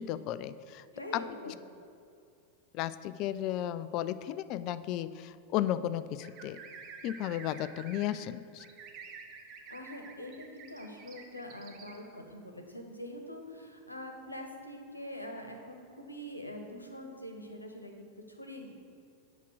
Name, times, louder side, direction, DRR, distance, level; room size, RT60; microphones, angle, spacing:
voice 1, 0.0-0.8 1.1-1.5 2.7-6.6 7.0-8.6, left 12 dB, 40° left, 15 dB, 0.3 m, -34 dB
voice 2, 0.9-1.6 9.7-18.7, left 1 dB, 85° left, 3 dB, 1.1 m, -44 dB
sound 1, 6.2-8.1 8.6-12.0, right 5 dB, 35° right, 1.0 m, -49 dB
8.2 x 6.0 x 6.2 m, 2.5 s
figure-of-eight pair, 90°, 0 cm